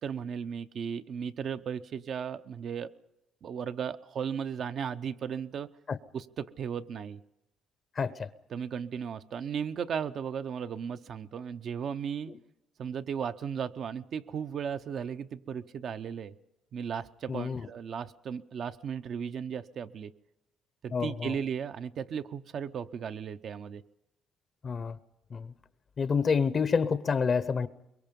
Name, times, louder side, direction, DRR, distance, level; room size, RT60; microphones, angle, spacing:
voice 1, 0.0-2.9 3.4-5.7 6.1-7.2 8.5-12.3 12.8-16.3 16.7-20.1 20.8-23.8, right 7 dB, 55° right, 0.7 m, -36 dB
voice 2, 8.0-8.3 17.3-17.7 20.9-21.3 24.6-25.0 25.3-25.5 26.0-27.7, left 5 dB, 40° left, 0.8 m, -28 dB
23.5 x 22.5 x 5.3 m
cardioid pair, 95°, 0 cm